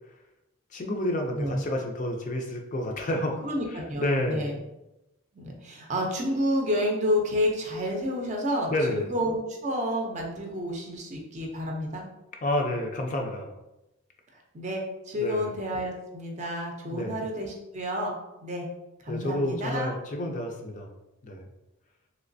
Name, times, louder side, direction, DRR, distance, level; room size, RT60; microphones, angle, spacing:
voice 1, 0.7-4.5 8.7-9.0 12.4-13.5 15.2-15.5 16.9-17.3 19.1-20.9 21.2-21.5, left 1 dB, 35° left, 2 dB, 0.4 m, -30 dB
voice 2, 3.4-4.6 5.3-12.1 14.5-18.1 18.4-18.7 19.0-19.9, equal, 35° right, 0 dB, 0.5 m, -30 dB
3.1 x 2.9 x 2.6 m, 0.94 s
head